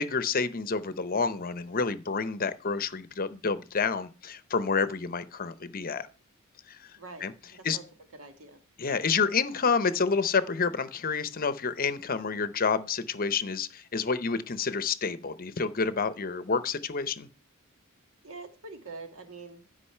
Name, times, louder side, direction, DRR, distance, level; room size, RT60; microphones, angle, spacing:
voice 1, 0.0-6.1 6.7-6.8 7.2-7.8 8.8-17.3, left 5 dB, 45° left, 0.7 m, -29 dB
voice 2, 7.0-7.8 8.1-8.6 18.2-19.6, right 3 dB, 70° right, 1.5 m, -45 dB
12.0 x 5.2 x 5.6 m
head